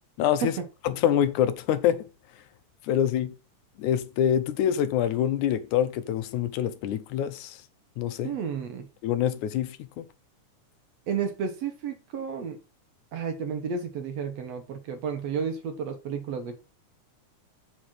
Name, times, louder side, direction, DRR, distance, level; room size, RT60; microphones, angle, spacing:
voice 1, 0.2-0.5 0.8-2.1 2.9-3.3 3.8-7.6 8.0-8.4 9.0-10.1, left 10 dB, 80° left, 2.1 m, -25 dB
voice 2, 8.2-8.9 11.1-12.6 13.1-16.6, right 6 dB, 60° right, 2.1 m, -32 dB
7.2 x 5.8 x 6.1 m
omnidirectional pair, 3.5 m